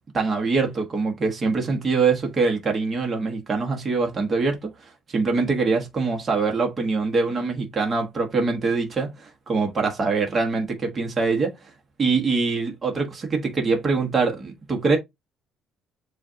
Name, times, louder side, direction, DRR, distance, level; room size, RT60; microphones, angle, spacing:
voice 1, 0.1-11.5 12.0-15.0, right 4 dB, 25° right, 1.2 m, -24 dB
7.2 x 2.5 x 2.8 m
cardioid pair, 140°, 0 cm